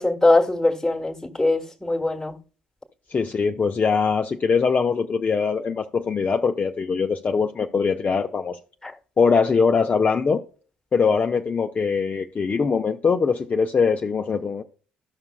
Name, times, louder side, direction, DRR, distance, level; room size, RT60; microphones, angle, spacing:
voice 1, 0.0-2.3 8.8-8.9, left 2 dB, 10° left, 1.3 m, -21 dB
voice 2, 3.1-8.6 9.2-10.4 10.9-14.6, left 5 dB, 30° left, 0.5 m, -22 dB
13.0 x 5.9 x 2.2 m
hypercardioid pair, 50°, 5 cm